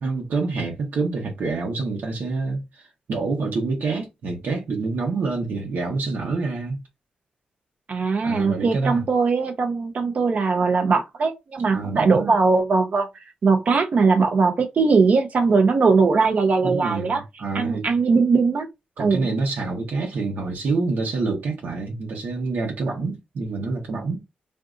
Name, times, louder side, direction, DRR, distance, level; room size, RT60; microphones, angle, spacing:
voice 1, 0.0-6.8 8.2-9.0 11.7-12.3 16.6-17.9 19.0-24.2, right 3 dB, 80° right, 1.0 m, -27 dB
voice 2, 7.9-13.1 13.4-17.2 17.5-18.7 19.0-19.3, right 4 dB, 55° right, 0.6 m, -20 dB
3.6 x 2.6 x 2.5 m
wide cardioid pair, 115°, 3 cm